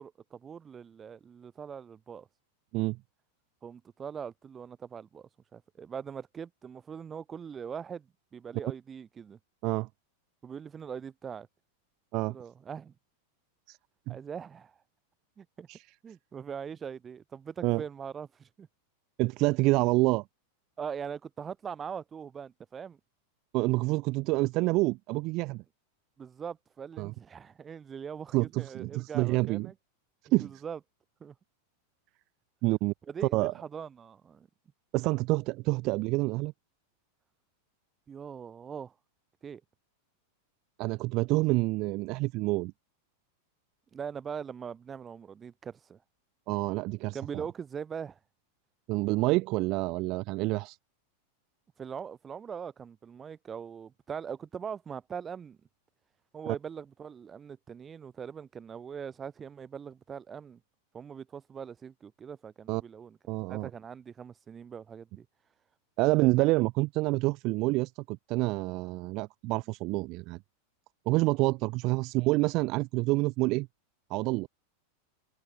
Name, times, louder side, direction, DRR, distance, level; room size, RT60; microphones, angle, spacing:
voice 1, 0.0-2.3 3.6-9.4 10.4-11.5 12.3-12.9 14.1-14.8 15.4-15.7 16.0-18.7 20.8-23.0 26.2-29.7 30.4-30.8 31.2-31.4 33.1-34.5 38.1-38.9 39.4-39.6 43.9-46.0 47.1-48.2 51.8-55.6 56.3-60.6 60.9-63.2 63.5-65.3, right 7 dB, 20° right, 3.6 m, -41 dB
voice 2, 19.2-20.2 23.5-25.6 27.0-27.1 28.3-29.7 30.3-30.5 32.6-32.9 33.3-33.5 34.9-36.5 40.8-42.7 46.5-47.2 48.9-50.8 56.5-56.6 62.7-62.8 63.3-63.7 66.0-70.4 71.1-73.7 74.1-74.5, right 22 dB, 40° right, 0.9 m, -27 dB
figure-of-eight pair, 90°, 0 cm